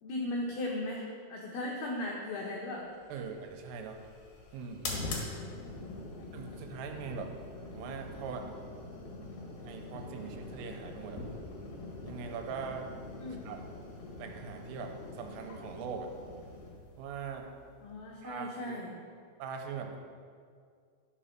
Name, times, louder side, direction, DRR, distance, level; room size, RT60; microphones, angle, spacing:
voice 1, 0.0-2.9 5.6-6.6 13.2-13.5 17.8-18.9, left 1 dB, 85° left, -1 dB, 2.2 m, -38 dB
sound 1, 3.0-18.3, left 2 dB, 70° left, 1.8 m, -44 dB
voice 2, 3.1-4.0 4.5-5.2 6.3-7.3 7.7-8.5 9.6-11.2 12.0-12.9 13.5-13.6 14.2-16.1 17.0-17.5 18.2-18.8 19.4-20.0, right 6 dB, 85° right, 3 dB, 3.4 m, -41 dB
12.0 x 5.1 x 5.8 m, 2.2 s
omnidirectional pair, 5.8 m